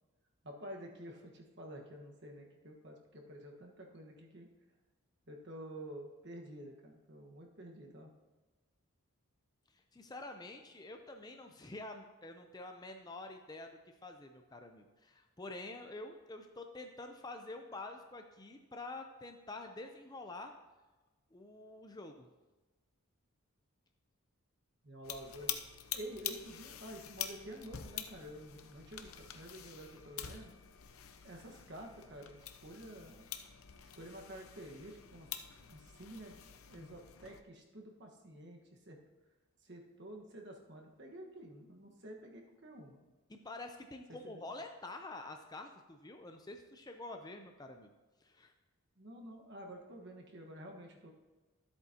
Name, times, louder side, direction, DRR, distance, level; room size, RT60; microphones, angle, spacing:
voice 1, 0.4-4.5 5.3-8.1 24.8-25.6 25.9-30.5 31.2-33.3 33.9-36.4 36.7-38.6 38.9-39.0 39.6-43.0 44.1-44.4 49.0-51.1, right 1 dB, 50° right, 1 dB, 1.4 m, -50 dB
voice 2, 9.7-20.5 21.3-22.3 43.3-47.9 48.2-48.5, left 2 dB, 20° left, 5 dB, 0.5 m, -47 dB
sound 1, 25.0-37.4, left 10 dB, 70° left, 0.7 m, -46 dB
13.0 x 8.1 x 2.8 m, 1.2 s
head